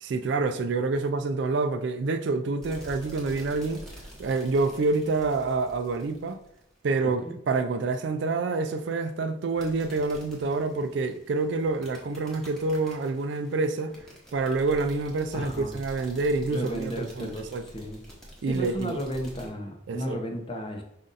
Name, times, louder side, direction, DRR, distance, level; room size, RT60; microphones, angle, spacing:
voice 1, 0.0-3.8 4.2-6.4 6.8-14.0 14.3-17.6 18.4-19.0 19.9-20.2, right 3 dB, 60° right, 0.3 m, -27 dB
sound 1, 2.6-6.8 9.5-19.5, right 1 dB, 5° left, 1.0 m, -47 dB
voice 2, 15.3-15.7 16.5-18.0 18.5-20.8, equal, 25° left, 0.6 m, -34 dB
5.2 x 2.5 x 3.9 m
head